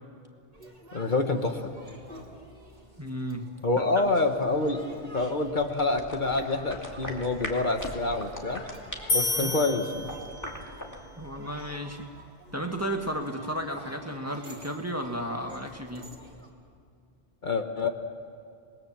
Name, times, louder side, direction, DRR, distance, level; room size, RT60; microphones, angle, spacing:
sound 1, 0.5-16.5, right 1 dB, 45° right, 2.8 m, -49 dB
voice 1, 0.9-1.6 3.6-4.8 5.1-8.6 9.1-10.1 17.4-17.9, left 3 dB, 50° left, 5 dB, 1.3 m, -27 dB
voice 2, 3.0-3.8 9.4-9.5 11.2-12.1 12.5-16.1, equal, 15° right, 3 dB, 1.6 m, -33 dB
sound 2, 3.9-11.0, equal, 15° left, 2.5 m, -42 dB
sound 3, 9.1-10.7, left 3 dB, 80° left, 1.7 m, -30 dB
27.0 x 20.5 x 7.3 m, 2.3 s
omnidirectional pair, 1.0 m